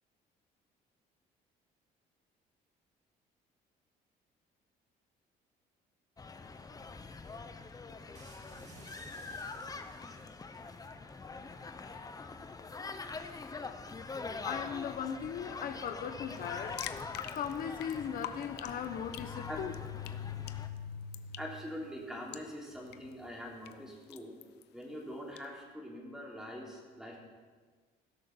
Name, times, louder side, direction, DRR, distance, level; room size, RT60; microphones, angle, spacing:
sound 1, 6.2-20.7, left 4 dB, 20° left, 0.9 m, -44 dB
sound 2, 8.1-10.6, right 3 dB, 45° right, 2.0 m, -56 dB
voice 1, 14.4-16.8 17.3-19.7 20.0-21.4, left 8 dB, 55° left, 6 dB, 1.0 m, -38 dB
sound 3, 16.3-25.5, left 12 dB, 80° left, 0.7 m, -49 dB
voice 2, 21.4-24.4 24.7-27.2, equal, 5° right, -2 dB, 3.5 m, -43 dB
16.0 x 6.4 x 7.1 m, 1.5 s
cardioid pair, 110°, 17 cm